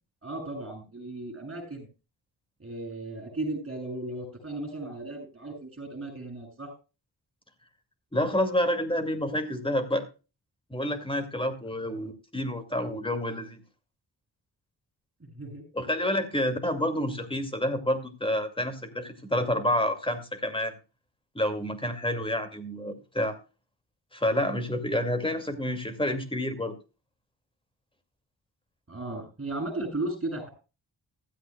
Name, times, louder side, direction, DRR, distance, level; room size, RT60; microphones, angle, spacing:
voice 1, 0.2-1.9 2.6-6.7 11.8-12.0 15.2-15.6 28.9-30.5, right 2 dB, 30° right, 5 dB, 7.2 m, -36 dB
voice 2, 8.1-10.1 10.7-13.6 15.7-20.7 21.3-23.4 24.1-26.8, left 1 dB, 10° left, 8 dB, 2.3 m, -29 dB
15.5 x 13.5 x 2.3 m, 0.31 s
wide cardioid pair, 100°, 43 cm